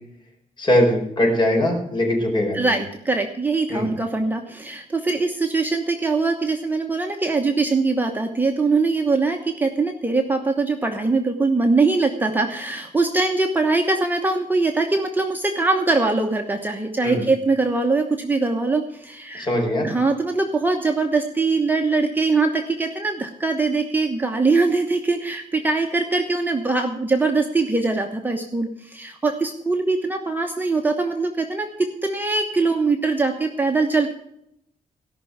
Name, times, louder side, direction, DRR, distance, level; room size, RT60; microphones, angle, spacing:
voice 1, 0.6-2.7 3.7-3.9 17.0-17.2 19.4-19.9, left 1 dB, 35° left, 1 dB, 4.5 m, -21 dB
voice 2, 2.5-19.5 19.8-34.1, right 3 dB, 15° right, 3 dB, 1.1 m, -22 dB
17.5 x 6.0 x 8.0 m, 0.76 s
wide cardioid pair, 140°, 14 cm